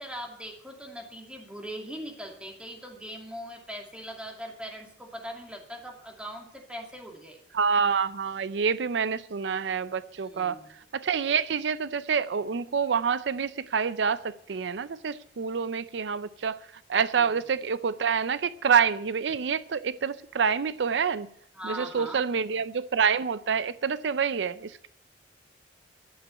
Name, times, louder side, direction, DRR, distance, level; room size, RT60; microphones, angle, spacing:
voice 1, 0.0-7.4 10.2-10.7 17.2-17.3 21.5-22.3, equal, 5° right, 2.4 m, -40 dB
voice 2, 7.5-10.6 10.9-16.6 16.9-21.3 21.6-24.9, right 6 dB, 80° right, 0.5 m, -27 dB
12.0 x 7.7 x 9.5 m
head